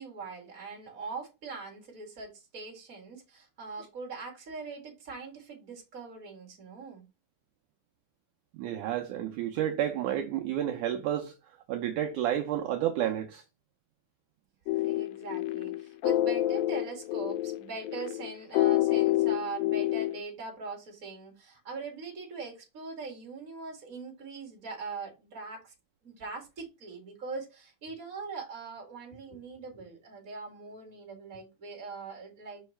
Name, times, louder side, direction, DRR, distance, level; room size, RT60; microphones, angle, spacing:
voice 1, 0.0-7.0 14.6-25.7 26.0-32.6, right 4 dB, 25° right, 2.2 m, -42 dB
voice 2, 8.5-11.4 11.7-13.4, right 11 dB, 80° right, 1.8 m, -30 dB
sound 1, 14.7-20.2, left 15 dB, 80° left, 2.2 m, -28 dB
5.6 x 5.5 x 3.2 m
omnidirectional pair, 4.4 m